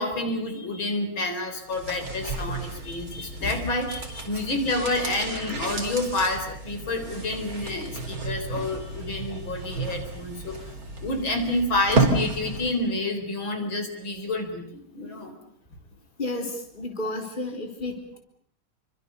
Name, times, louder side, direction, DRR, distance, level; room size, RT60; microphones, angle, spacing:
voice 1, 0.0-10.6 11.0-15.3, left 2 dB, 65° left, 6 dB, 4.9 m, -29 dB
sound 1, 1.6-12.9 13.1-13.2, right 3 dB, 40° right, 4.7 m, -32 dB
voice 2, 16.2-18.2, left 2 dB, 20° left, 3 dB, 4.2 m, -32 dB
29.0 x 25.5 x 6.9 m, 0.65 s
omnidirectional pair, 2.3 m